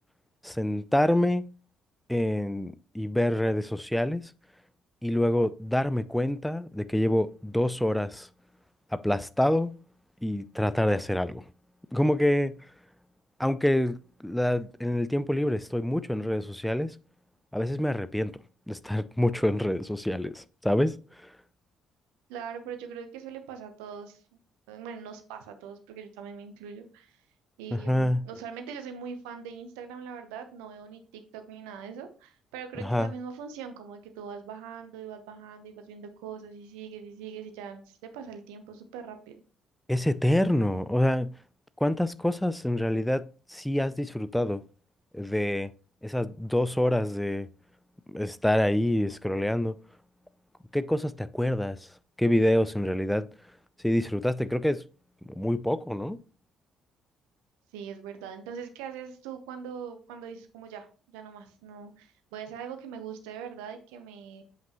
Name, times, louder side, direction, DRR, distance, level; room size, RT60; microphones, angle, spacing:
voice 1, 0.4-1.5 2.1-4.3 5.0-8.3 8.9-9.8 10.2-11.4 11.9-12.5 13.4-16.9 17.5-18.3 18.7-21.0 27.7-28.2 32.8-33.1 39.9-41.3 41.8-43.2 43.5-44.6 45.1-45.7 46.0-47.5 48.1-49.8 50.7-51.8 52.2-53.3 53.8-54.8 55.4-56.2, left 1 dB, 5° left, 0.5 m, -26 dB
voice 2, 22.3-24.2 24.7-27.2 27.6-39.4 57.7-64.4, right 7 dB, 70° right, 0.9 m, -42 dB
7.8 x 5.4 x 3.0 m
figure-of-eight pair, 50°, 0 cm